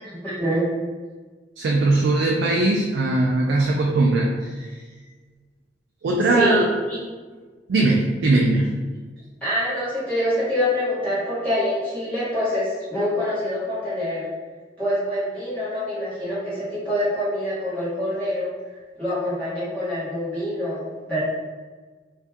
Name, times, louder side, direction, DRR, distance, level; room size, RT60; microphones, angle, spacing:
voice 1, 0.0-0.7 6.3-7.0 9.4-14.3 14.8-18.5 19.0-21.2, left 1 dB, 10° left, -13 dB, 1.4 m, -25 dB
voice 2, 1.6-4.7 6.0-6.7 7.7-8.7, right 2 dB, 75° right, -1 dB, 0.3 m, -20 dB
2.6 x 2.3 x 3.3 m, 1.4 s
head